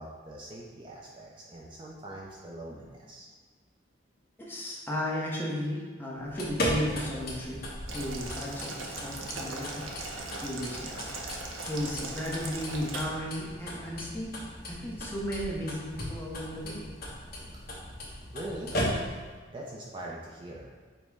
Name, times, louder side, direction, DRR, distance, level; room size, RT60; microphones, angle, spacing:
voice 1, 0.0-3.3 18.3-18.7 19.5-20.7, right 1 dB, 25° right, -3 dB, 0.4 m, -42 dB
voice 2, 4.4-7.6 7.9-14.3 14.7-16.9, equal, 10° left, -4 dB, 0.7 m, -35 dB
sound 1, 6.2-19.4, equal, 50° left, 1.0 m, -37 dB
Boiling, 7.9-13.0, right 3 dB, 85° right, 0.6 m, -39 dB
5.2 x 2.1 x 4.6 m, 1.5 s
head